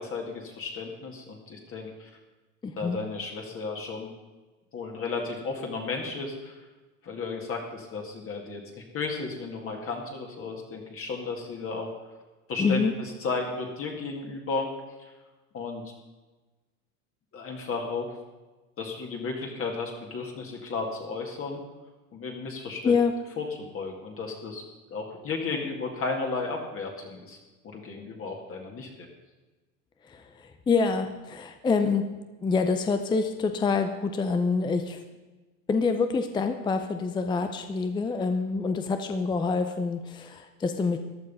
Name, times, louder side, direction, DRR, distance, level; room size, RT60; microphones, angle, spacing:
voice 1, 0.0-2.1 2.8-4.1 4.7-6.6 7.0-8.6 8.9-11.9 12.5-14.7 15.5-15.8 17.3-18.1 18.8-21.6 22.1-23.0 23.4-24.6 24.9-27.4 27.6-29.1, left 4 dB, 30° left, 1 dB, 2.1 m, -34 dB
voice 2, 2.6-3.0 12.6-12.9 22.8-23.1 30.1-32.0 32.4-35.0 35.7-41.0, left 4 dB, 10° left, 7 dB, 0.6 m, -26 dB
14.5 x 11.0 x 5.5 m, 1.2 s
supercardioid pair, 140°, 44 cm